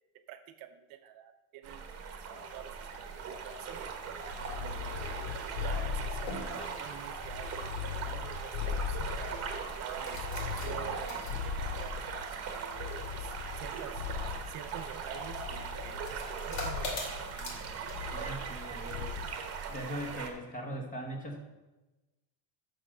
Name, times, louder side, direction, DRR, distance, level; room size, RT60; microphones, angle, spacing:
voice 1, 0.3-5.0 5.5-12.0 12.4-14.1 14.5-17.7, right 10 dB, 45° right, 9 dB, 0.7 m, -48 dB
sound 1, 1.6-20.3, right 5 dB, 30° right, 1.0 m, -40 dB
sound 2, 4.3-6.7 7.2-9.6 10.1-12.3 12.8-14.6 15.3-16.2 16.5-17.0 17.9-18.6 18.9-19.4, left 7 dB, 55° left, 0.5 m, -39 dB
sound 3, 5.9-19.0, left 2 dB, 80° left, 3.0 m, -47 dB
voice 2, 18.1-19.3 19.7-21.4, right 1 dB, 15° left, 2 dB, 0.9 m, -40 dB
6.7 x 6.3 x 6.1 m, 1.1 s
cardioid pair, 170°, 48 cm